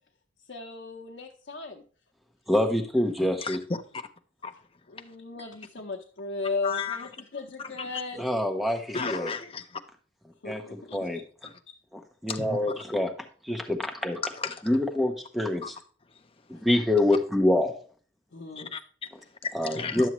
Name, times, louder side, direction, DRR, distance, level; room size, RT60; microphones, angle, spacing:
voice 1, 0.5-1.8 4.9-8.2 10.4-11.1 11.7-11.8 16.5-16.6 18.3-18.7, left 3 dB, 60° left, 0.8 m, -36 dB
voice 2, 2.5-3.6 8.2-9.3 10.4-11.2 11.9-13.1 13.4-14.2 14.7-15.7 16.5-17.7 19.5-20.1, left 1 dB, ahead, 0.8 m, -26 dB
voice 3, 6.6-7.1 7.6-7.9 8.9-9.8 11.4-11.6 12.3-12.6 14.2-14.6 15.6-15.7 16.1-16.2 18.6-20.1, left 5 dB, 30° left, 0.6 m, -35 dB
11.0 x 7.1 x 3.0 m
head